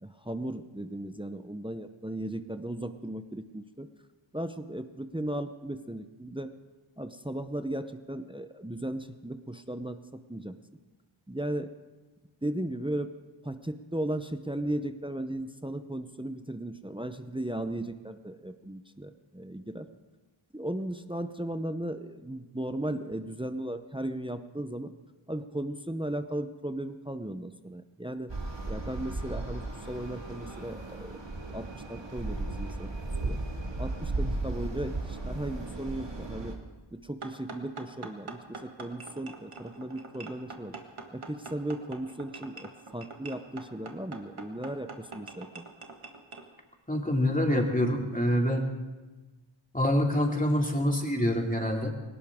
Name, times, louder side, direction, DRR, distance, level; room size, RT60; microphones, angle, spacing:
voice 1, 0.0-3.9 4.3-6.5 7.0-10.5 11.3-11.7 12.4-13.1 13.4-19.9 20.5-24.9 25.3-28.3 28.7-31.2 31.5-32.9 33.2-33.4 33.8-36.5 37.0-40.7 41.1-45.6, right 1 dB, 10° right, 9 dB, 0.7 m, -36 dB
sound 1, 28.3-36.6, right 2 dB, 60° right, 2.0 m, -35 dB
sound 2, 37.2-46.5, right 4 dB, 80° right, 1.6 m, -44 dB
voice 2, 46.9-48.6 49.7-51.9, left 1 dB, 15° left, 1 dB, 2.5 m, -26 dB
21.0 x 18.5 x 3.6 m, 1.2 s
wide cardioid pair, 40°, 49 cm